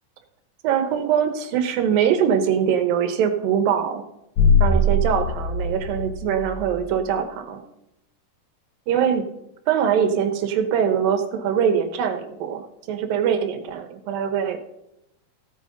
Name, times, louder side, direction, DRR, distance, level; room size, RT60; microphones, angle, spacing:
voice 1, 0.6-4.0 4.6-7.6 8.9-9.3 9.7-14.6, right 8 dB, 75° right, 7 dB, 2.7 m, -22 dB
sound 1, 4.4-6.8, left 2 dB, 70° left, 2.8 m, -21 dB
15.5 x 9.0 x 3.9 m, 0.86 s
omnidirectional pair, 4.2 m